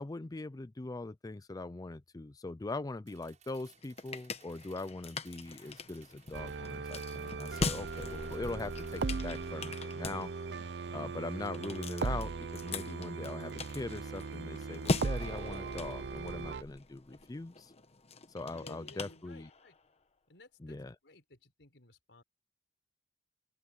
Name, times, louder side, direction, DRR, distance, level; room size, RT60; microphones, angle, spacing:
voice 1, 0.0-10.3 10.9-17.7 18.3-19.5 20.6-21.0, left 2 dB, 20° left, 0.4 m, -41 dB
sound 1, 3.1-9.1, right 8 dB, 45° right, 7.4 m, -62 dB
sound 2, 3.5-19.8, left 3 dB, 35° left, 1.1 m, -41 dB
sound 3, 6.3-16.6, right 4 dB, 70° right, 0.6 m, -38 dB
voice 2, 18.5-19.8 20.3-20.8 21.0-22.2, left 2 dB, 85° left, 4.2 m, -56 dB
open air
head